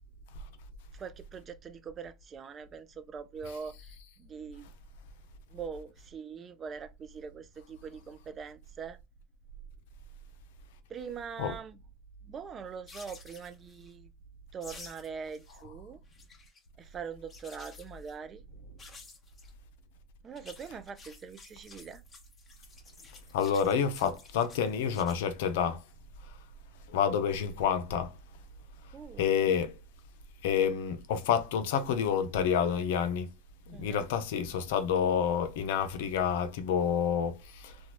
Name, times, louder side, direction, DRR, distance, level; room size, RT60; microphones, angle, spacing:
voice 1, 0.9-4.7 5.5-9.0 10.9-11.8 12.2-14.1 14.5-16.0 16.8-18.4 20.2-22.0 28.9-29.2 33.7-34.1, right 6 dB, 35° right, 0.5 m, -43 dB
sound 1, 12.9-13.9 14.6-15.6 15.9-16.6 17.3-18.1 18.8-19.5 20.2-25.2, left 4 dB, 30° left, 0.9 m, -52 dB
voice 2, 23.3-25.8 26.3-26.4 26.9-28.2 29.2-29.8 30.4-33.3 33.7-37.8, left 7 dB, 75° left, 0.5 m, -29 dB
2.9 x 2.3 x 2.4 m
hypercardioid pair, 90°, 0 cm